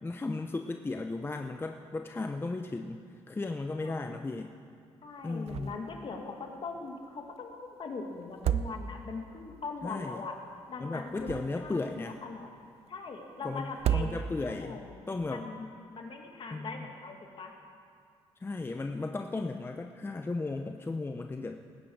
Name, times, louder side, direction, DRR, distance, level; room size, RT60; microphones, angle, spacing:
voice 1, 0.0-4.5 5.2-5.7 9.8-10.2 10.8-12.2 13.4-14.8 15.1-15.5 16.5-16.8 18.4-21.6, left 3 dB, 20° left, 5 dB, 0.6 m, -35 dB
voice 2, 3.8-4.2 5.0-10.4 10.7-12.5 12.9-15.7 15.9-17.5, left 4 dB, 50° left, 2 dB, 2.0 m, -41 dB
sound 1, 5.5-6.0 6.3-6.4 8.2-9.2 10.9-11.8 13.7-14.6, right 10 dB, 70° right, 0.5 m, -32 dB
19.5 x 10.0 x 4.7 m, 2.3 s
cardioid pair, 85°, 11 cm